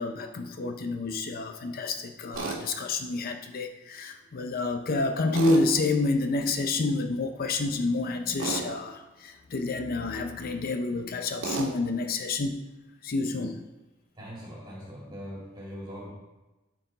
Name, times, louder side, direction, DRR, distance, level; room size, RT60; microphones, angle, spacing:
voice 1, 0.0-12.6 13.0-13.6, left 3 dB, 50° left, 6 dB, 0.5 m, -29 dB
Tools, 2.3-2.6 5.3-5.7 8.4-8.7 11.4-11.7, right 4 dB, 85° right, 1.7 m, -31 dB
voice 2, 14.2-16.1, equal, 20° right, -6 dB, 2.0 m, -41 dB
13.0 x 4.4 x 3.9 m, 1.1 s
head